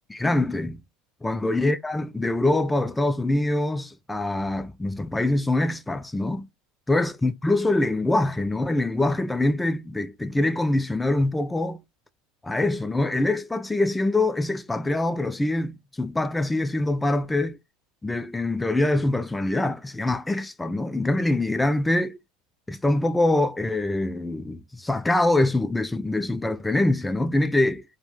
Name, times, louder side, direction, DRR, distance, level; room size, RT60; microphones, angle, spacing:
voice 1, 0.1-0.8 1.2-6.5 6.9-11.8 12.4-17.6 18.0-22.2 22.7-28.0, left 2 dB, 10° left, 0.3 m, -24 dB
2.4 x 2.1 x 3.3 m
hypercardioid pair, 75°, 0 cm